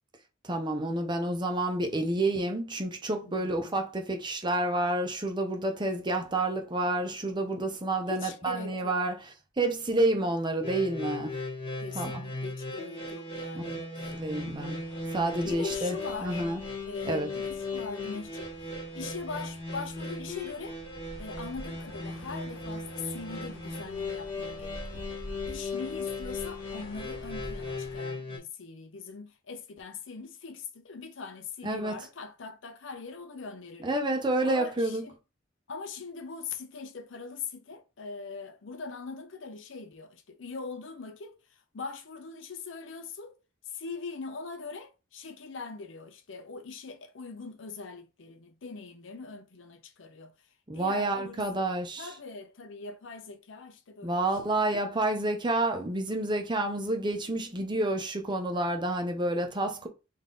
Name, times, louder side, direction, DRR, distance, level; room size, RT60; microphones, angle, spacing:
voice 1, 0.4-9.2 9.6-11.4 12.0-12.1 13.5-14.8 15.1-16.6 17.0-17.3 31.6-32.0 33.8-35.0 50.7-52.1 54.0-59.9, right 2 dB, 25° right, 0.7 m, -29 dB
voice 2, 3.2-3.8 8.1-9.1 11.8-13.8 15.4-16.5 16.9-18.7 18.9-20.8 21.2-25.1 25.5-33.9 34.5-35.1 35.7-41.4 41.7-43.3 43.7-50.3 50.7-51.6 52.0-54.2 57.6-57.7, left 4 dB, 70° left, 0.6 m, -41 dB
sound 1, 10.6-28.4, left 3 dB, 30° left, 1.1 m, -37 dB
sound 2, 14.0-28.0, equal, 85° left, 1.1 m, -47 dB
3.9 x 2.7 x 3.7 m
head